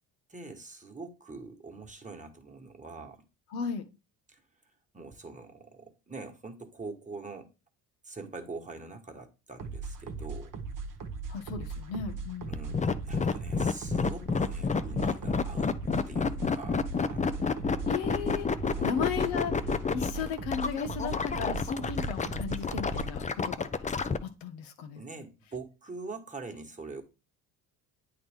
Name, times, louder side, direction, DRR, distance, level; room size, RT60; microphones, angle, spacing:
voice 1, 0.3-3.2 4.3-4.4 4.9-7.5 8.0-10.5 12.5-15.8 16.1-17.8 18.8-19.2 24.9-27.0, right 3 dB, 15° right, 1.4 m, -44 dB
voice 2, 3.5-3.8 11.3-12.5 17.9-18.5 18.8-23.7 24.2-25.0, left 6 dB, 80° left, 1.1 m, -35 dB
sound 1, 9.6-23.2, right 4 dB, 45° right, 1.1 m, -39 dB
sound 2, 12.5-24.2, left 5 dB, 15° left, 0.4 m, -29 dB
8.8 x 3.9 x 3.6 m
supercardioid pair, 70°, 45 cm